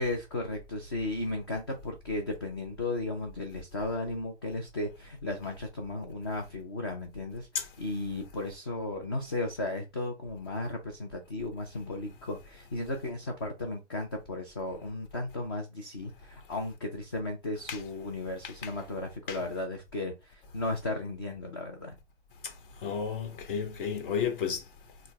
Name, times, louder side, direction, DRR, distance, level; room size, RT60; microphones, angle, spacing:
voice 1, 0.0-7.5 7.8-22.0, left 2 dB, 25° left, 0.4 m, -35 dB
voice 2, 22.8-24.6, left 7 dB, 50° left, 1.3 m, -32 dB
4.2 x 2.1 x 3.3 m
figure-of-eight pair, 135°, 35 cm